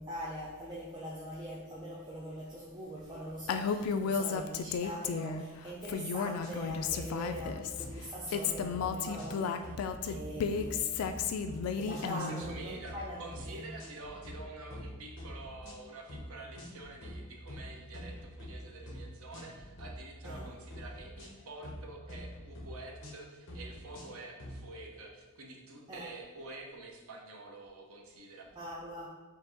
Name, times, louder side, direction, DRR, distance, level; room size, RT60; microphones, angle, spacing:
voice 1, 0.0-9.7 10.0-10.8 11.7-13.6 20.2-20.5 25.9-26.1 28.6-29.1, equal, 20° right, -6 dB, 0.5 m, -42 dB
Female speech woman speaking, 3.5-5.4 5.8-7.8 8.3-12.4, left 6 dB, 80° left, 0.3 m, -33 dB
sound 1, 6.4-7.0 7.3-7.5 7.8-8.0 8.2-8.9 9.2-9.4 9.6-10.3 10.5-10.7 11.0-11.6 11.9-12.1 12.4-13.0 13.3-13.5 13.8-14.4 14.7-14.9 15.2-15.8 16.1-16.3 16.5-17.2 17.5-18.5 18.9-19.0 19.3-19.9 20.2-20.4 20.7-21.8 22.1-22.7 23.0-23.2 23.5-24.1 24.4-24.6, left 1 dB, 60° left, 1.0 m, -46 dB
voice 2, 12.1-28.5, right 2 dB, 80° right, 1 dB, 0.7 m, -48 dB
4.6 x 2.6 x 3.8 m, 1.2 s
head